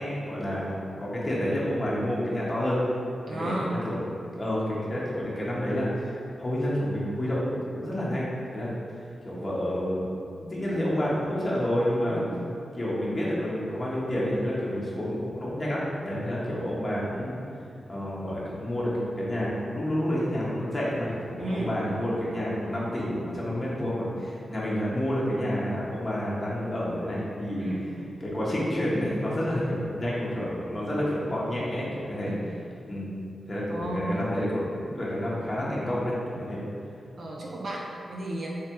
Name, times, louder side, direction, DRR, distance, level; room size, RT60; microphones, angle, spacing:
voice 1, 0.0-2.8 3.3-4.0 4.3-10.1 10.4-12.2 12.7-17.4 17.9-18.9 19.2-27.7 28.2-32.3 32.8-33.2 33.5-36.6, equal, 30° left, -7 dB, 1.0 m, -29 dB
voice 2, 3.3-3.7 12.1-12.4 21.4-21.8 27.6-27.9 32.2-32.4 33.7-34.1 37.2-38.5, right 1 dB, 60° right, -3 dB, 0.8 m, -33 dB
3.3 x 3.3 x 4.4 m, 2.6 s
wide cardioid pair, 90°, 0 cm